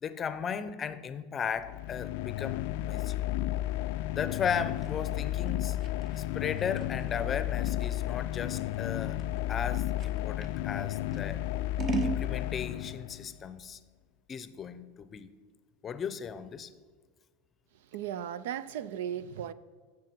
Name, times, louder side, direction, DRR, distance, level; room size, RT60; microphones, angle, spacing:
voice 1, 0.0-3.2 4.2-5.8 6.2-9.2 9.5-11.4 12.0-13.8 14.3-15.3 15.8-16.7, left 7 dB, 30° left, 0.6 m, -36 dB
sound 1, 1.6-13.4, left 14 dB, 70° left, 0.3 m, -33 dB
Scissors, 4.4-10.6 11.1-12.3, right 3 dB, 30° right, 0.8 m, -38 dB
voice 2, 17.7-19.5, right 10 dB, 80° right, 0.4 m, -36 dB
10.0 x 7.5 x 4.4 m
supercardioid pair, 125°, 0 cm